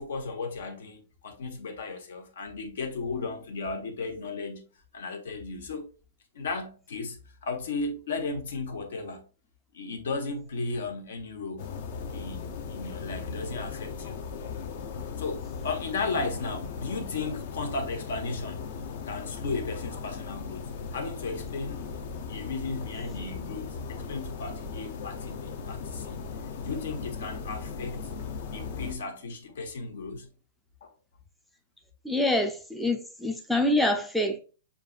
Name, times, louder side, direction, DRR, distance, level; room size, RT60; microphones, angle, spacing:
voice 1, 0.0-4.6 4.9-5.9 6.3-9.2 9.7-11.7 12.1-14.2 15.2-18.6 19.0-21.8 22.3-26.2 26.6-28.1 28.5-30.3 30.8-30.9, left 3 dB, 75° left, 1.1 m, -35 dB
sound 1, 11.6-28.9, left 5 dB, 45° left, 0.6 m, -37 dB
voice 2, 32.0-34.4, left 1 dB, ahead, 0.4 m, -26 dB
6.5 x 2.4 x 2.4 m
hypercardioid pair, 160°, 0 cm